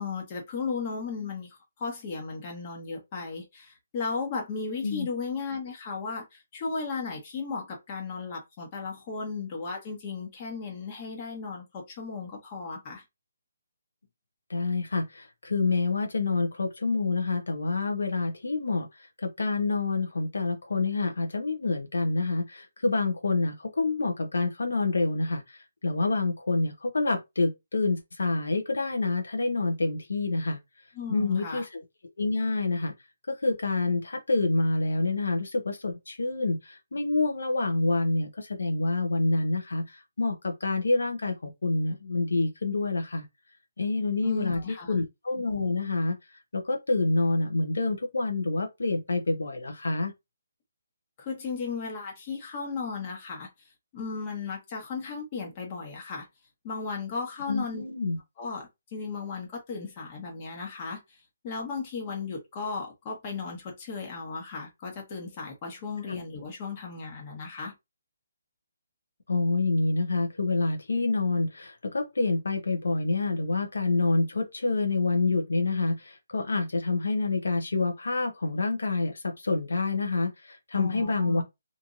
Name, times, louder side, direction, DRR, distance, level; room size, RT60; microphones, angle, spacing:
voice 1, 0.0-13.0 30.9-31.7 44.2-44.9 51.2-53.5 53.9-56.3 56.6-57.8 58.4-61.2 61.4-67.7 80.7-81.4, left 4 dB, 25° left, 1.1 m, -35 dB
voice 2, 14.5-30.6 31.1-31.8 32.2-32.9 33.3-43.3 43.8-44.6 44.9-46.2 46.5-50.1 57.5-58.2 66.1-66.2 69.3-81.4, left 3 dB, 90° left, 0.8 m, -27 dB
3.0 x 2.5 x 2.5 m
hypercardioid pair, 165°, 0 cm